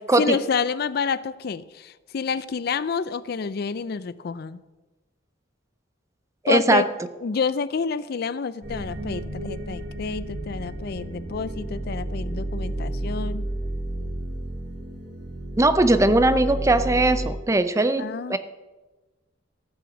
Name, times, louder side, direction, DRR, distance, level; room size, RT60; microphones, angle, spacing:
voice 1, 0.0-4.6 6.5-6.8 7.2-13.5 18.0-18.4, left 5 dB, 55° left, 16 dB, 0.4 m, -28 dB
voice 2, 6.4-6.8 15.6-18.0 18.3-18.4, right 2 dB, 15° right, 12 dB, 0.5 m, -19 dB
sound 1, 8.6-17.3, right 1 dB, 60° right, 2.5 m, -31 dB
14.5 x 6.1 x 7.1 m, 1.2 s
head